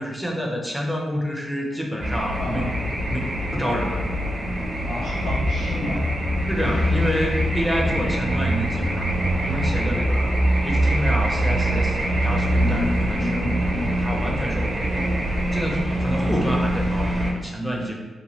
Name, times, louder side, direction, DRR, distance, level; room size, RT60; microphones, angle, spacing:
voice 1, 0.0-2.8 3.1-4.1 6.5-10.3 10.6-13.5 14.0-15.0 15.5-17.9, equal, 5° left, -1 dB, 0.6 m, -28 dB
sound 1, 2.0-17.3, right 1 dB, 50° right, 0.8 m, -23 dB
voice 2, 2.4-2.7 4.8-6.1 6.3-6.5 7.8-8.1 12.6-13.9 16.2-16.3, left 2 dB, 80° left, -6 dB, 0.4 m, -31 dB
2.8 x 2.1 x 3.1 m, 1.3 s
supercardioid pair, 40°, 0 cm